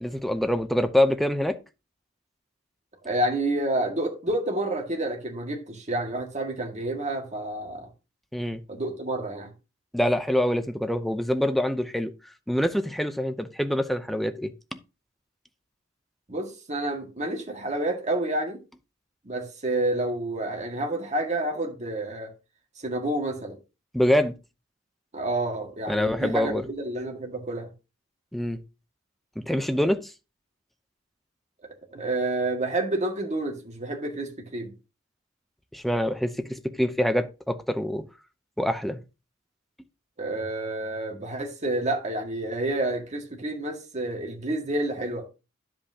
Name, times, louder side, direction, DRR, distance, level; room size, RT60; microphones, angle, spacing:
voice 1, 0.0-1.5 8.3-8.6 9.9-12.1 12.5-14.5 23.9-24.3 25.9-26.6 28.3-28.6 29.4-30.0 35.7-38.0 38.6-39.0, left 1 dB, ahead, 0.6 m, -25 dB
voice 2, 3.0-7.9 8.7-9.5 16.3-18.6 19.2-22.3 22.8-23.6 25.1-27.7 31.6-34.7 40.2-45.3, right 1 dB, 35° right, 1.9 m, -29 dB
10.5 x 7.7 x 2.8 m
head